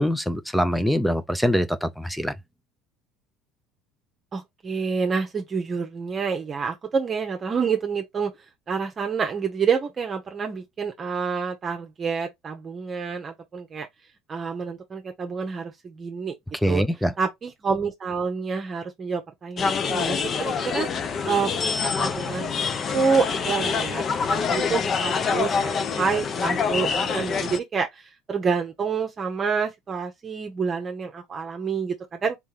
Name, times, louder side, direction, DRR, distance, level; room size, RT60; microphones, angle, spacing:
voice 1, 0.0-2.3 16.6-17.1, equal, ahead, 0.5 m, -23 dB
voice 2, 4.3-8.3 8.7-13.9 14.3-16.4 16.6-16.8 17.2-20.9 21.2-32.4, right 5 dB, 25° right, 1.0 m, -28 dB
sound 1, 19.6-27.6, left 5 dB, 35° left, 0.7 m, -26 dB
3.7 x 3.5 x 3.0 m
supercardioid pair, 115°, 0 cm